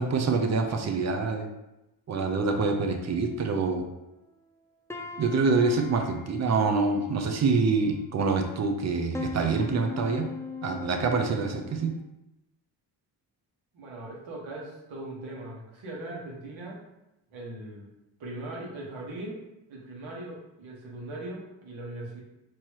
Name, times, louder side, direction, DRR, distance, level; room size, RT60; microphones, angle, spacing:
voice 1, 0.0-1.5 2.1-3.9 5.2-10.3 10.6-11.9, right 4 dB, 35° right, 4 dB, 0.6 m, -26 dB
sound 1, 2.1-4.0 4.4-4.6 4.9-8.2 8.7-12.0, left 4 dB, 5° left, 0.3 m, -41 dB
voice 2, 13.7-16.8 17.3-17.9 18.2-19.4 19.7-22.2, right 2 dB, 70° right, -3 dB, 1.4 m, -39 dB
4.5 x 3.0 x 2.9 m, 0.93 s
cardioid pair, 65°, 48 cm